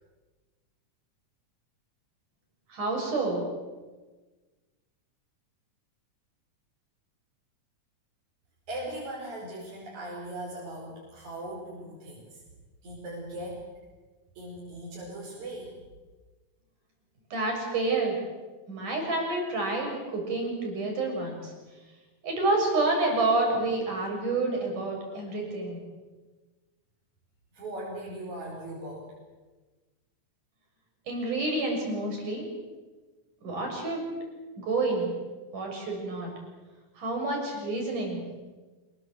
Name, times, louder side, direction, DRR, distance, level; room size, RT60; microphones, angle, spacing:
voice 1, 2.7-3.4 17.3-18.2 18.7-21.5 22.2-25.8 31.1-32.5 33.4-34.0 34.6-35.1 35.5-36.3 37.0-38.2, right 2 dB, 80° right, 1 dB, 8.7 m, -28 dB
voice 2, 8.7-12.4 12.8-13.7 14.3-15.8 27.5-29.1, right 1 dB, 65° right, -4 dB, 6.6 m, -39 dB
27.0 x 22.0 x 8.0 m, 1.3 s
omnidirectional pair, 3.6 m